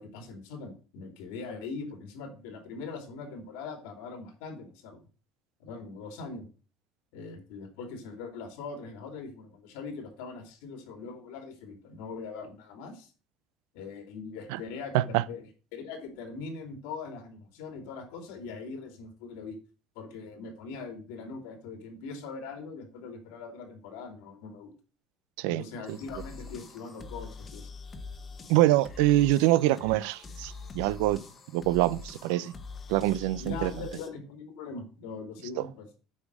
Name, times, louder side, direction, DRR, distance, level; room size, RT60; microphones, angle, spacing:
voice 1, 0.0-5.0 5.6-6.5 7.1-13.1 13.7-15.5 15.7-19.6 19.9-24.7 25.5-27.7 33.4-36.0, left 4 dB, 90° left, 2.8 m, -41 dB
sound 1, 25.9-34.1, left 4 dB, 20° left, 1.0 m, -44 dB
voice 2, 28.5-31.2 31.5-32.5 32.9-33.7, right 15 dB, 85° right, 0.5 m, -25 dB
8.4 x 5.4 x 6.2 m
cardioid pair, 180°, 0 cm